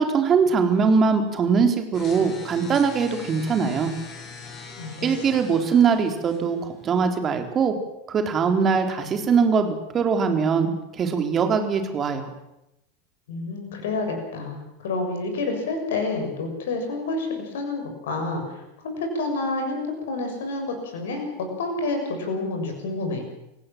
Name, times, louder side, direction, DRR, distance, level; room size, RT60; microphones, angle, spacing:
voice 1, 0.0-3.9 5.0-7.7 8.1-12.3, right 5 dB, 30° right, 6 dB, 4.0 m, -22 dB
sound 1, 1.9-6.9, left 4 dB, 35° left, 7.2 m, -42 dB
voice 2, 4.8-5.1 13.3-23.2, left 3 dB, 60° left, 4 dB, 6.9 m, -29 dB
27.5 x 17.5 x 7.6 m, 0.89 s
figure-of-eight pair, 85°, 0 cm